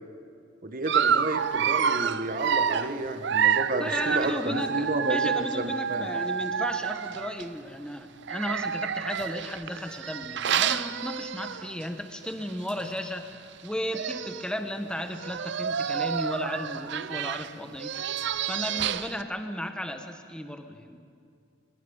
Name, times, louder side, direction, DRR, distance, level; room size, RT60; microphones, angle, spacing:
voice 1, 0.6-5.3 5.5-6.1, right 2 dB, 45° right, 7 dB, 1.7 m, -31 dB
Dog, 0.9-7.5 8.2-11.8 12.2-12.4 12.7-12.8 13.7-13.8 13.9-14.5 15.1-19.2, right 7 dB, 65° right, 0.6 m, -29 dB
voice 2, 3.8-18.1 18.5-21.0, equal, 5° left, 7 dB, 1.3 m, -35 dB
22.0 x 21.0 x 7.2 m, 2.3 s
head